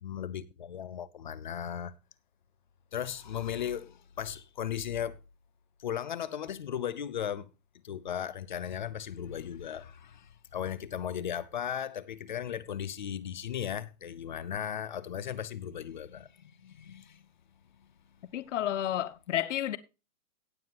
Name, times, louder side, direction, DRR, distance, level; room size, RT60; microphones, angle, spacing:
voice 1, 0.0-1.9 2.9-5.2 5.8-7.5 7.8-17.2, left 9 dB, 35° left, 0.6 m, -36 dB
voice 2, 18.3-19.8, left 11 dB, 55° left, 1.0 m, -31 dB
17.5 x 7.2 x 2.9 m
hypercardioid pair, 170°, 43 cm